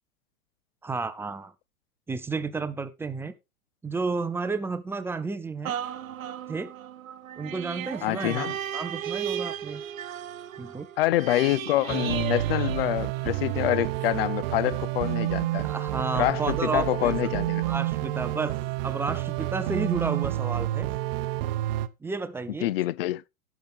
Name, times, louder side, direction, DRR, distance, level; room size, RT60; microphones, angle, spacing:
voice 1, 0.8-1.5 2.1-3.3 3.8-5.7 6.5-6.7 7.4-8.5 8.7-9.8 10.6-10.9 15.6-17.4 17.7-18.6 18.8-20.9 22.0-22.7, right 4 dB, 5° right, 0.6 m, -31 dB
sound 1, 5.6-13.5 14.0-14.1, right 10 dB, 70° right, 0.9 m, -35 dB
voice 2, 8.0-8.6 11.0-15.7 16.1-17.6 22.6-23.2, left 16 dB, 45° left, 0.5 m, -26 dB
sound 2, 11.9-21.9, right 15 dB, 40° right, 0.8 m, -29 dB
17.0 x 5.9 x 3.5 m
figure-of-eight pair, 100°, 43 cm